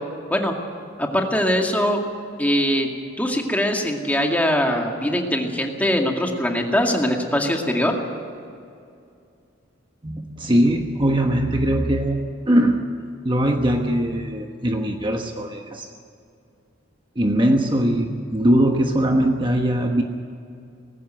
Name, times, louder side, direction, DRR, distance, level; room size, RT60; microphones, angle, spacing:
voice 1, 1.0-2.0 2.4-2.9 3.2-8.0, equal, 10° left, 2 dB, 2.1 m, -22 dB
voice 2, 10.0-12.9 13.2-15.9 17.2-20.0, right 1 dB, 25° right, 3 dB, 1.1 m, -21 dB
19.0 x 15.5 x 9.1 m, 2.5 s
head